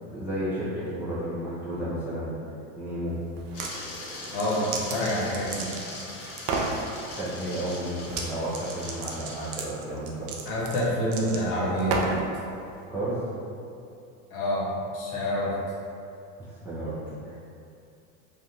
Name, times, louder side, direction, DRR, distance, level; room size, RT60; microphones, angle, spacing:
voice 1, 0.1-2.4 2.8-3.2 7.2-10.4 12.9-13.2 16.4-17.0 17.2-17.4, right 1 dB, 5° right, -11 dB, 0.3 m, -32 dB
sound 1, 3.4-3.7 4.2-6.0 6.4-6.8 8.1-8.3 8.5-12.3, right 4 dB, 60° right, 0.5 m, -32 dB
sound 2, 3.5-9.7, left 2 dB, 80° left, 0.8 m, -41 dB
voice 2, 4.3-5.7 10.5-12.1 14.3-15.5, left 1 dB, 50° left, -5 dB, 0.9 m, -27 dB
2.5 x 2.1 x 2.8 m, 2.6 s
hypercardioid pair, 100°, 42 cm